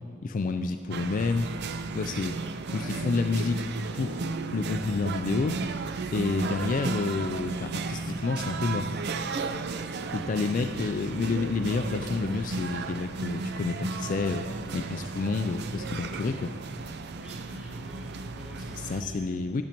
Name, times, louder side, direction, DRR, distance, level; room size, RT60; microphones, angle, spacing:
voice 1, 0.2-1.5 1.9-2.4 2.7-3.6 3.9-4.2 4.5-5.6 6.1-8.9 10.1-14.5 14.7-16.5 18.7-19.6, left 4 dB, 40° left, 7 dB, 0.3 m, -29 dB
sound 1, 0.9-19.0, right 3 dB, 55° right, 0.4 m, -34 dB
voice 2, 2.7-3.0 17.2-19.4, equal, 5° right, -5 dB, 1.8 m, -47 dB
12.0 x 10.5 x 3.0 m, 2.6 s
head